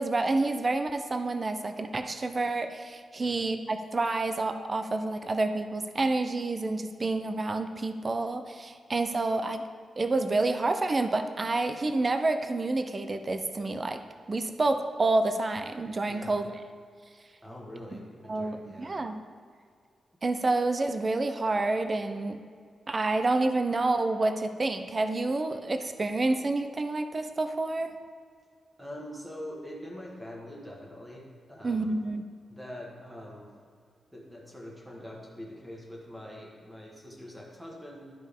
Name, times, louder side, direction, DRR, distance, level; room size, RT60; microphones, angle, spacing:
voice 1, 0.0-9.6 10.0-14.0 14.3-16.6 18.3-19.2 20.2-22.4 22.9-27.9 31.6-32.2, right 2 dB, 25° right, 8 dB, 0.4 m, -28 dB
voice 2, 16.1-16.4 17.4-19.0 28.8-31.2 31.5-32.0 32.5-33.5 34.1-38.1, left 1 dB, 5° right, -2 dB, 1.4 m, -44 dB
11.5 x 5.3 x 3.6 m, 2.1 s
wide cardioid pair, 175°, 0 cm